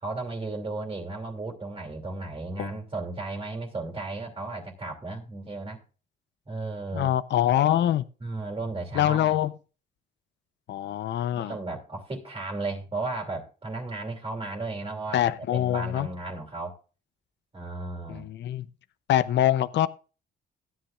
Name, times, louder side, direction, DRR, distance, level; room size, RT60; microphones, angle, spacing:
voice 1, 0.0-5.8 6.5-7.1 8.2-9.3 11.4-16.7 17.5-18.3, right 2 dB, 25° right, 2.9 m, -34 dB
voice 2, 6.9-8.0 8.9-9.5 10.7-11.5 15.1-16.1 18.1-18.6 19.1-19.9, left 12 dB, 65° left, 0.6 m, -24 dB
16.0 x 9.8 x 2.4 m
cardioid pair, 90°, 20 cm